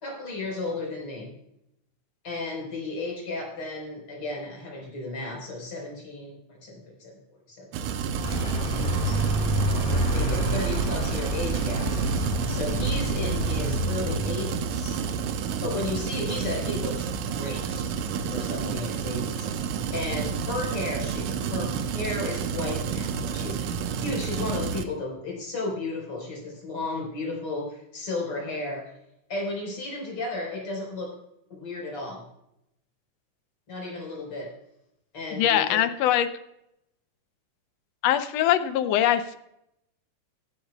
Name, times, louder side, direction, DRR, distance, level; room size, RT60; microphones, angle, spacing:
voice 1, 0.0-1.3 2.2-7.2 7.5-7.7 9.0-9.3 9.9-11.9 12.5-15.0 15.6-17.9 18.3-19.7 19.9-23.7 24.0-28.9 29.3-31.1 31.5-32.2 33.7-34.5 35.1-35.8, left 2 dB, 45° left, -1 dB, 5.4 m, -34 dB
sound 1, 7.7-24.8, right 6 dB, 80° right, 2.3 m, -30 dB
Vehicle, 8.2-14.6, right 1 dB, 20° left, 1.6 m, -28 dB
voice 2, 35.3-36.3 38.0-39.4, left 11 dB, 70° left, 10 dB, 1.6 m, -22 dB
16.0 x 12.0 x 2.4 m, 0.80 s
omnidirectional pair, 3.6 m